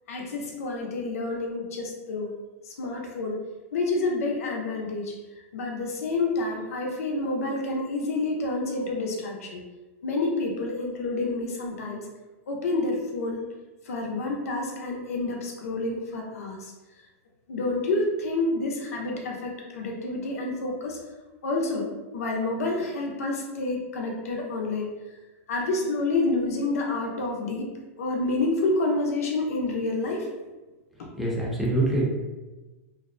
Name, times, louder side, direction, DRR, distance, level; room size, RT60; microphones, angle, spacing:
voice 1, 0.1-2.3 2.7-3.4 3.7-5.1 5.5-9.6 10.0-12.0 12.5-13.4 13.9-16.7 17.5-21.0 21.4-21.9 22.1-24.9 25.5-30.3 31.0-31.1, left 2 dB, 85° left, 0 dB, 0.6 m, -28 dB
voice 2, 31.1-32.1, right 2 dB, ahead, -6 dB, 0.7 m, -25 dB
2.6 x 2.1 x 2.5 m, 1.1 s
hypercardioid pair, 135°, 8 cm